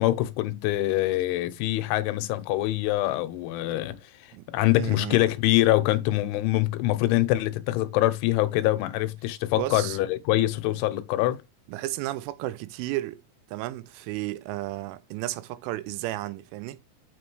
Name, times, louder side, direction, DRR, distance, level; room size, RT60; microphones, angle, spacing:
voice 1, 0.0-4.0 4.5-11.4, left 16 dB, 85° left, 3.1 m, -24 dB
voice 2, 4.8-5.2 9.5-10.0 10.3-10.4 11.7-13.2 13.5-16.8, right 16 dB, 85° right, 3.1 m, -33 dB
7.2 x 6.0 x 3.1 m
omnidirectional pair, 5.6 m